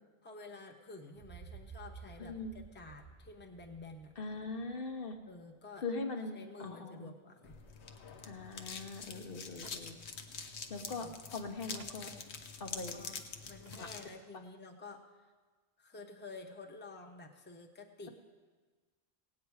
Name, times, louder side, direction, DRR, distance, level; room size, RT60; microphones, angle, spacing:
voice 1, 0.2-4.1 5.3-5.8 6.2-7.6 11.0-11.1 12.9-15.3 15.8-18.1, left 3 dB, 10° left, 2 dB, 0.8 m, -51 dB
sound 1, 1.1-5.0, right 6 dB, 30° right, 0.4 m, -53 dB
voice 2, 2.2-2.6 4.2-5.2 5.8-7.1 8.2-10.0 10.7-12.1 12.6-13.0 13.7-13.9, left 3 dB, 60° left, 4 dB, 1.0 m, -41 dB
sound 2, 7.4-14.1, left 5 dB, 80° left, 1.1 m, -46 dB
sound 3, 9.6-9.9 10.1-10.2 11.1-11.2 11.7-12.2 13.2-13.3 13.7-14.0, right 7 dB, 70° right, 0.9 m, -58 dB
17.5 x 8.7 x 4.7 m, 1.4 s
omnidirectional pair, 1.1 m